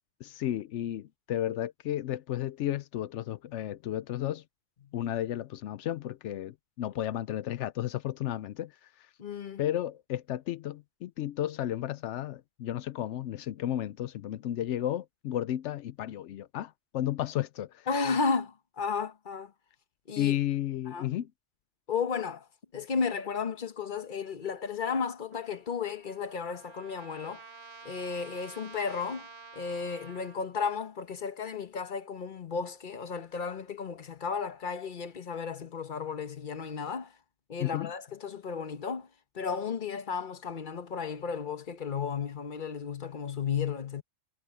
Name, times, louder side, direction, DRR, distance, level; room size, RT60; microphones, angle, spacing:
voice 1, 0.2-4.4 4.9-9.1 9.6-17.9 20.2-21.3 37.6-37.9, left 12 dB, 85° left, 0.9 m, -33 dB
voice 2, 9.2-9.6 17.9-19.5 20.1-20.4 20.9-21.1 21.9-22.5 22.7-27.4 27.8-29.3 29.5-37.1 37.5-39.1 39.3-44.0, left 5 dB, 45° left, 1.2 m, -33 dB
Trumpet, 25.3-30.4, right 5 dB, 65° right, 1.6 m, -50 dB
omnidirectional pair, 1.2 m